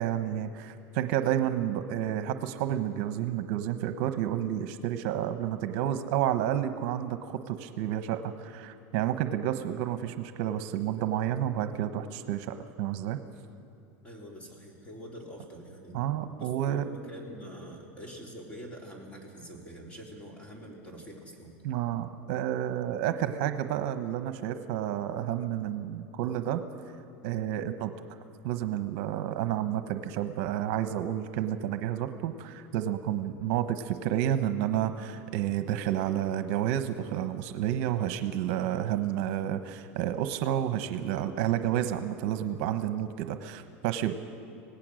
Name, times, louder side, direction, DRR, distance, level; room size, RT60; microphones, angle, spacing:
voice 1, 0.0-13.2 15.9-16.8 21.6-26.6 27.2-27.9 28.4-44.1, right 11 dB, 60° right, 9 dB, 1.0 m, -30 dB
voice 2, 14.0-21.5, equal, 15° left, 0 dB, 3.9 m, -45 dB
25.5 x 18.0 x 6.4 m, 2.7 s
supercardioid pair, 140°, 7 cm